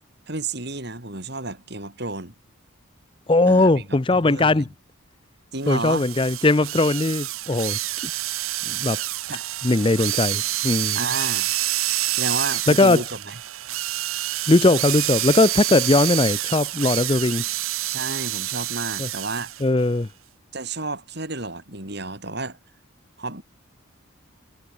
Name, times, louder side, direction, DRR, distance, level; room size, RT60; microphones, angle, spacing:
voice 1, 0.3-2.3 3.5-4.6 5.5-6.1 9.3-9.4 10.9-11.5 12.1-13.4 17.9-19.5 20.5-22.6 23.2-23.4, right 3 dB, 50° right, 4.6 m, -31 dB
voice 2, 3.3-4.7 5.7-7.8 8.7-9.0 9.6-11.0 12.7-13.0 14.5-17.5 19.0-19.1 19.6-20.1, left 2 dB, 25° left, 0.6 m, -19 dB
sound 1, 5.7-19.6, right 15 dB, 75° right, 1.1 m, -27 dB
head